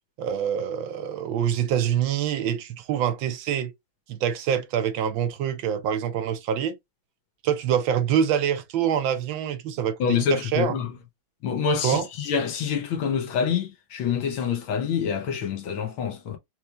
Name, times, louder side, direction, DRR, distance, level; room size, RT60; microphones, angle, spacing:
voice 1, 0.2-3.7 4.1-6.8 7.4-10.8 11.8-12.1, right 9 dB, 80° right, 1.4 m, -25 dB
voice 2, 10.0-10.9 11.4-16.4, left 7 dB, 75° left, 1.7 m, -26 dB
4.4 x 3.2 x 2.4 m
omnidirectional pair, 2.2 m